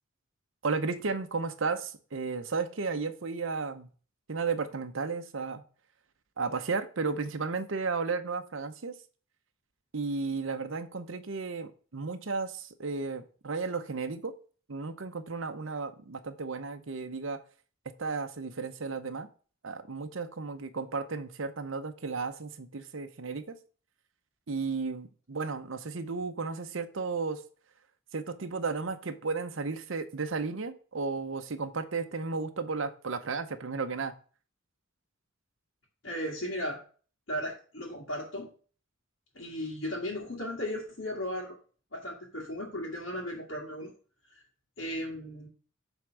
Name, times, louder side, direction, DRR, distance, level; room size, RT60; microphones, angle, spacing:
voice 1, 0.6-3.9 4.3-5.6 6.4-9.0 9.9-14.4 14.7-17.4 18.0-19.3 19.6-23.5 24.5-27.4 28.1-34.1, right 4 dB, 65° right, 8 dB, 0.7 m, -34 dB
voice 2, 36.0-36.8 37.3-38.5 39.4-41.6 41.9-43.9 44.3-44.4 44.8-45.5, equal, 60° left, -5 dB, 1.9 m, -36 dB
8.1 x 3.6 x 6.1 m, 0.40 s
head